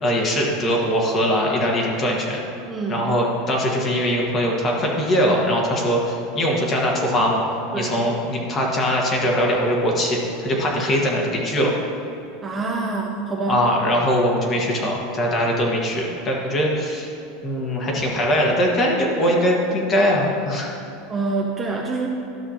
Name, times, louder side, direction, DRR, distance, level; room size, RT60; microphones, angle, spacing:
voice 1, 0.0-2.4 2.9-7.4 7.7-11.7 13.5-17.1 17.4-20.7, equal, 25° left, -1 dB, 1.4 m, -21 dB
voice 2, 2.7-3.0 7.7-7.9 12.4-13.6 21.1-22.1, right 3 dB, 20° right, 0 dB, 0.6 m, -26 dB
12.0 x 6.2 x 2.9 m, 2.8 s
supercardioid pair, 145°, 0 cm